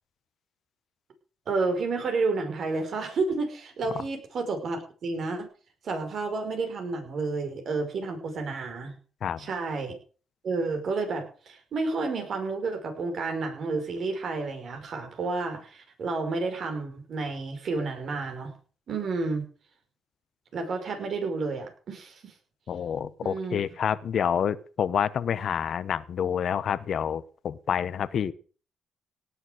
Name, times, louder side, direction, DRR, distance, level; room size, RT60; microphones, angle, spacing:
voice 1, 1.5-5.5 5.8-8.9 9.4-9.9 10.4-18.5 18.9-19.4 20.5-22.3 23.2-23.6, right 3 dB, 60° right, 5 dB, 5.4 m, -30 dB
voice 2, 22.7-28.3, left 8 dB, 60° left, 16 dB, 1.0 m, -28 dB
18.0 x 7.3 x 6.6 m, 0.40 s
cardioid pair, 90°, 0 cm